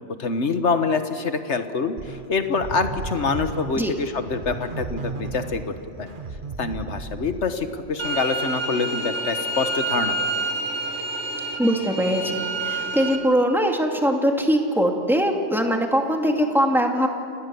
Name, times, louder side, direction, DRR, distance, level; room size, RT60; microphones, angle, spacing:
voice 1, 0.0-6.1 6.6-10.5, left 4 dB, 80° left, 8 dB, 1.7 m, -26 dB
sound 1, 2.0-7.8, right 4 dB, 45° right, 1.4 m, -35 dB
sound 2, 8.0-13.2, right 2 dB, 85° right, 2.1 m, -28 dB
voice 2, 11.6-17.1, equal, ahead, 2 dB, 2.3 m, -21 dB
29.0 x 20.0 x 7.0 m, 2.5 s
omnidirectional pair, 1.2 m